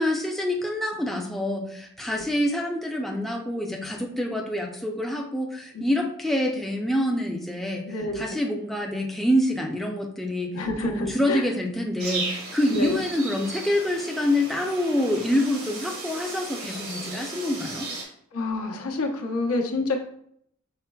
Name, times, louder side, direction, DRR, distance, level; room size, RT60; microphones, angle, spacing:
voice 1, 0.0-7.8 8.2-10.5 10.8-17.9, left 1 dB, ahead, 0 dB, 0.4 m, -26 dB
voice 2, 7.8-8.2 10.5-11.5 12.7-13.0 18.3-20.0, left 2 dB, 85° left, 2 dB, 0.8 m, -28 dB
sound 1, 12.0-18.0, right 3 dB, 85° right, 1.8 m, -36 dB
5.7 x 4.0 x 2.3 m, 0.67 s
head